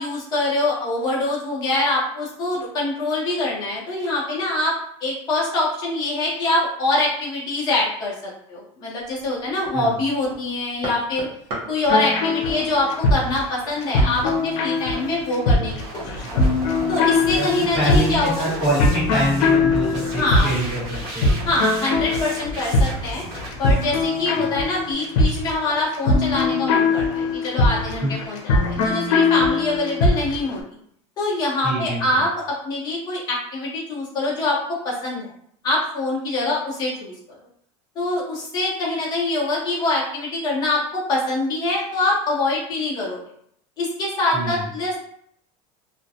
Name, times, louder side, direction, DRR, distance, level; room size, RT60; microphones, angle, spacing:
voice 1, 0.0-4.7 5.0-11.3 11.7-16.4 16.9-18.6 20.2-20.5 21.4-23.2 23.6-30.6 31.2-34.6 34.8-35.3 35.6-37.4 37.9-43.2 43.8-45.0, left 2 dB, 25° left, -5 dB, 0.8 m, -24 dB
sound 1, 9.0-15.4, right 1 dB, 45° right, 0.8 m, -40 dB
sound 2, 11.9-30.5, left 3 dB, 90° left, 0.6 m, -21 dB
sound 3, 15.7-24.9, equal, 60° right, 1.0 m, -35 dB
voice 2, 17.3-21.3 24.3-24.4 28.0-28.1 31.6-32.2 44.3-44.6, right 1 dB, 25° right, -12 dB, 1.3 m, -25 dB
2.4 x 2.2 x 2.7 m, 0.68 s
cardioid pair, 175°, 15 cm